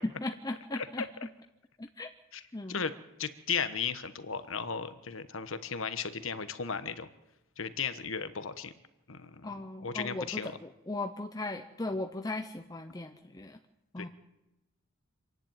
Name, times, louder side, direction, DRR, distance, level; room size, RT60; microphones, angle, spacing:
voice 1, 0.0-1.0 1.8-2.1 2.5-2.8 9.4-13.6 13.9-14.1, left 2 dB, 20° left, 6 dB, 0.7 m, -37 dB
voice 2, 0.8-1.1 2.7-2.9 3.2-7.1 7.6-8.7 9.1-9.5 9.8-10.5 14.0-14.1, left 6 dB, 70° left, 11 dB, 1.3 m, -35 dB
26.5 x 11.0 x 9.0 m, 0.97 s
head